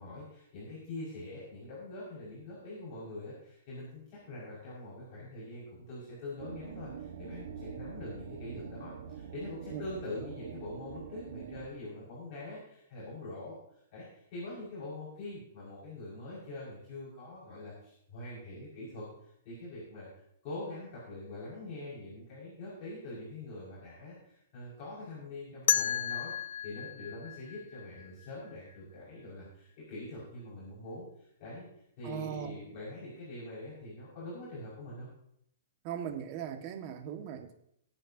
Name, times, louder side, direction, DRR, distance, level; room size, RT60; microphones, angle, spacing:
voice 1, 0.0-13.6 13.9-20.1 20.4-26.3 26.6-31.6 32.0-35.1, left 2 dB, 40° left, -8 dB, 6.1 m, -44 dB
sound 1, 6.4-11.7, right 7 dB, 75° right, 1.6 m, -45 dB
sound 2, 25.7-28.5, left 9 dB, 70° left, 0.7 m, -33 dB
voice 2, 32.0-32.5 35.8-37.6, right 9 dB, 40° right, 5 dB, 1.8 m, -39 dB
21.5 x 9.0 x 2.9 m, 0.72 s
hypercardioid pair, 145°, 0 cm